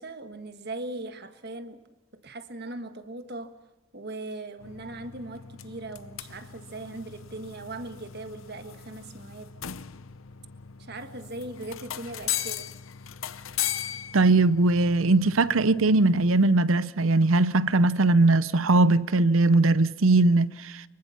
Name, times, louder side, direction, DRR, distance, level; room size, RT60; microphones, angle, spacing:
voice 1, 0.0-1.8 2.2-3.5 3.9-9.5 10.8-12.7, right 2 dB, 50° right, 1.5 m, -39 dB
sound 1, 4.6-16.6, left 10 dB, 75° left, 0.8 m, -38 dB
voice 2, 14.1-20.8, right 2 dB, 75° right, 0.7 m, -20 dB
24.0 x 23.0 x 5.8 m
head